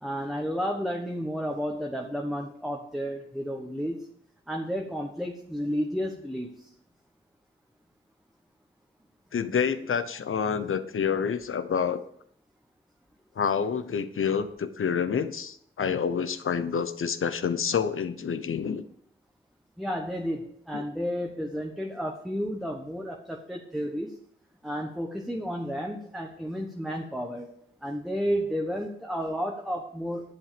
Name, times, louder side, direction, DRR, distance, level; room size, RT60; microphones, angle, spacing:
voice 1, 0.0-4.1 4.5-6.5 19.8-24.1 24.6-27.5 27.8-30.3, equal, ahead, 1 dB, 1.2 m, -32 dB
voice 2, 9.3-12.0 13.4-18.8 20.7-20.8, left 7 dB, 85° left, 11 dB, 0.9 m, -28 dB
10.5 x 8.0 x 5.1 m, 0.67 s
wide cardioid pair, 90°, 21 cm